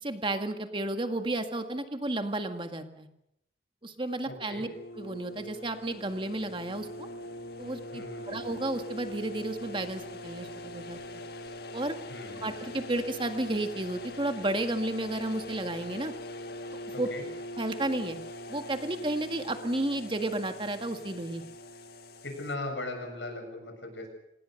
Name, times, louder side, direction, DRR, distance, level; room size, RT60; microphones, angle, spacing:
voice 1, 0.0-3.1 3.8-4.7 5.0-7.1 7.6-11.2 11.7-12.0 12.4-16.1 16.7-17.1 17.6-18.2 18.5-21.4, right 1 dB, 30° right, 7 dB, 1.8 m, -32 dB
voice 2, 4.3-4.6 7.9-8.6 12.1-12.7 16.9-17.3 22.2-24.1, left 2 dB, 85° left, 4 dB, 7.6 m, -39 dB
sound 1, 4.7-22.5, left 1 dB, 60° left, 1.7 m, -42 dB
26.0 x 19.5 x 6.6 m, 0.81 s
head